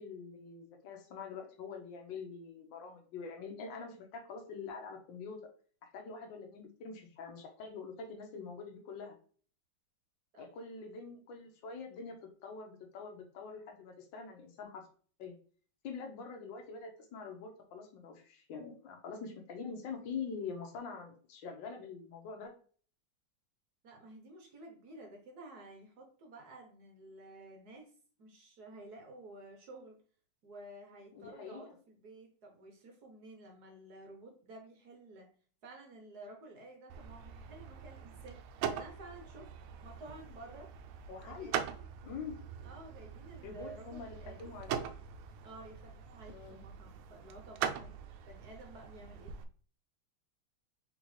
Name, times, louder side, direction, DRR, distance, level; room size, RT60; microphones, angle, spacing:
voice 1, 0.0-5.5 5.8-9.2 10.4-12.2 12.4-14.9 15.2-15.4 15.8-22.5 31.1-31.7 41.1-41.6 42.0-42.4 43.4-44.8 46.3-46.6, left 5 dB, 65° left, 3 dB, 1.6 m, -45 dB
voice 2, 23.8-27.9 28.2-30.0 30.4-35.3 35.6-39.5 39.8-40.7 41.2-41.9 42.6-44.5 45.4-47.9 48.3-49.3, right 2 dB, 55° right, 2 dB, 1.2 m, -52 dB
sound 1, 36.9-49.4, right 8 dB, 85° right, 1.5 m, -42 dB
4.2 x 4.0 x 3.1 m, 0.43 s
omnidirectional pair, 2.3 m